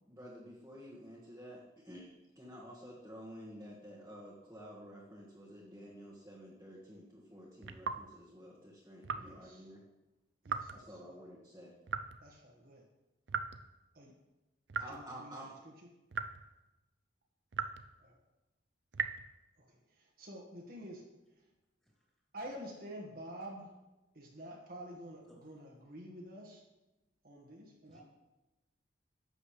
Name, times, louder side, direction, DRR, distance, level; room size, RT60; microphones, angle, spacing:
voice 1, 0.0-9.8 10.7-11.7 14.8-15.5, equal, 15° right, -7 dB, 1.7 m, -51 dB
sound 1, 7.6-8.1 9.0-9.4 10.4-10.8 11.9-12.3 13.3-13.7 14.7-15.0 16.1-16.5 17.5-17.9 18.9-19.3, right 6 dB, 80° right, 0.6 m, -38 dB
voice 2, 9.2-9.6 10.4-10.8 12.2-12.8 13.9-14.1 14.7-15.4 18.0-18.2 19.9-21.0 22.3-23.7 24.1-26.6 27.2-28.0, equal, 55° right, -1 dB, 1.7 m, -48 dB
voice 3, 25.3-25.6 27.9-28.0, right 1 dB, 5° left, -5 dB, 2.8 m, -63 dB
11.5 x 7.8 x 3.3 m, 1.0 s
head